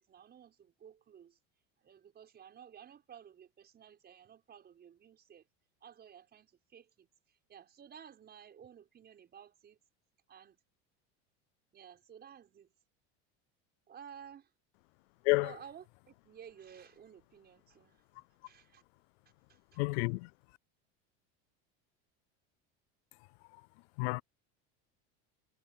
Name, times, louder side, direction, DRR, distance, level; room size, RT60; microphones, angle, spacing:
voice 1, 0.0-1.4 1.8-5.5 5.8-9.8 10.3-10.6 11.7-12.7 13.9-14.5 15.4-18.8 19.5-19.6, right 8 dB, 30° right, 5.9 m, -54 dB
voice 2, 19.8-20.3 23.5-23.7 24.0-24.2, left 26 dB, 80° left, 0.5 m, -30 dB
supercardioid pair, 130°, 32 cm